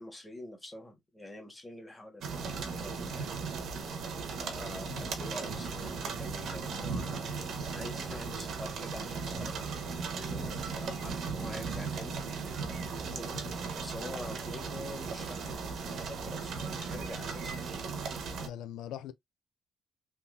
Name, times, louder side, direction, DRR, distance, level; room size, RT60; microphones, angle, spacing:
voice 1, 0.0-3.4 4.4-7.3 7.7-9.5 10.1-12.5 13.1-13.4 13.7-17.6, left 1 dB, 10° left, 1.3 m, -46 dB
sound 1, 2.2-18.5, right 5 dB, 70° right, 1.0 m, -37 dB
voice 2, 18.4-19.1, left 10 dB, 90° left, 0.3 m, -42 dB
3.6 x 2.8 x 2.4 m
cardioid pair, 90°, 0 cm